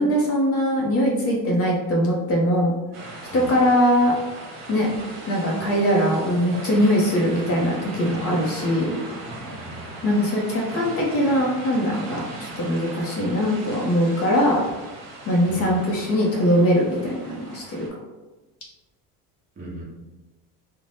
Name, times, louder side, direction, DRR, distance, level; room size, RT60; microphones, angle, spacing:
voice 1, 0.0-2.7 3.3-4.1 4.7-4.9 5.3-8.9 10.0-14.6 15.3-17.9, equal, 40° left, -2 dB, 0.5 m, -21 dB
sound 1, 2.9-17.9, right 2 dB, 65° right, 0.9 m, -38 dB
voice 2, 9.5-9.9 15.5-15.8 19.6-19.8, right 1 dB, 20° right, -7 dB, 0.8 m, -38 dB
2.6 x 2.0 x 3.2 m, 1.1 s
cardioid pair, 140°, 36 cm